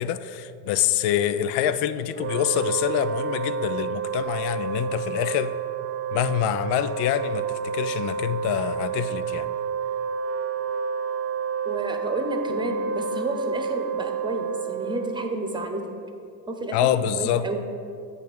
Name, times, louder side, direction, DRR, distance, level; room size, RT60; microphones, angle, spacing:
voice 1, 0.0-5.6 6.1-9.5 16.7-17.5, left 10 dB, 60° left, 13 dB, 0.5 m, -26 dB
Wind instrument woodwind instrument, 2.1-15.5, right 6 dB, 30° right, 0.4 m, -30 dB
voice 2, 11.6-15.8 16.5-17.6, right 2 dB, 10° right, 4 dB, 1.0 m, -31 dB
8.2 x 3.6 x 6.1 m, 2.5 s
hypercardioid pair, 75°, 45 cm